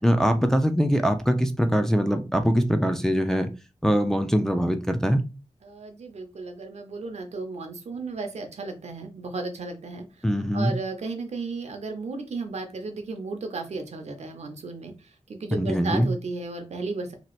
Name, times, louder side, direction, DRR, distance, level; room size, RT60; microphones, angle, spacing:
voice 1, 0.0-3.5 3.8-5.2 10.2-10.7 15.5-16.1, equal, 5° left, 0.3 m, -22 dB
voice 2, 5.6-10.0 10.5-14.9 15.3-17.1, right 3 dB, 80° right, 0.7 m, -34 dB
2.9 x 2.4 x 3.0 m
wide cardioid pair, 120°, 11 cm